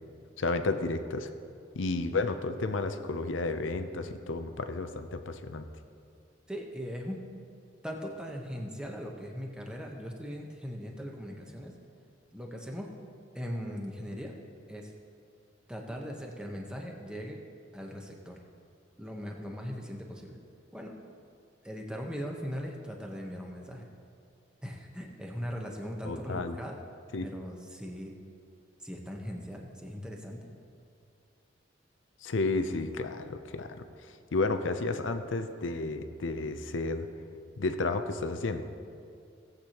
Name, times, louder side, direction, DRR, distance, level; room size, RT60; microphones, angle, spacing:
voice 1, 0.4-1.3 1.7-5.6 26.0-26.6 27.1-27.3 32.2-33.8 34.3-37.1 37.6-38.6, left 3 dB, 90° left, 9 dB, 0.6 m, -32 dB
voice 2, 6.5-7.2 7.8-11.7 12.3-12.9 13.3-14.4 14.7-14.9 15.7-17.4 17.7-18.4 19.0-20.4 20.7-20.9 21.6-23.9 24.6-26.7 27.2-28.1 28.8-30.5, equal, 5° right, 0 dB, 1.0 m, -39 dB
17.5 x 8.1 x 3.0 m, 2.4 s
head